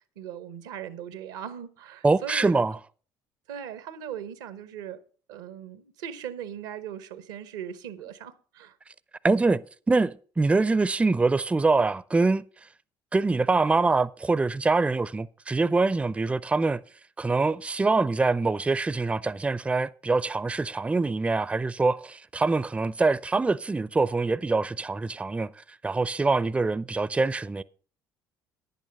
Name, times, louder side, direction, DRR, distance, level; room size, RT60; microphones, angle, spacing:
voice 1, 0.2-2.6 3.5-5.0 5.3-8.7, right 9 dB, 85° right, 0.9 m, -39 dB
voice 2, 2.0-2.8 9.2-12.4 13.1-16.8 17.2-25.5 25.8-27.6, right 3 dB, 15° right, 0.4 m, -24 dB
10.5 x 9.1 x 5.3 m
hypercardioid pair, 65°, 10 cm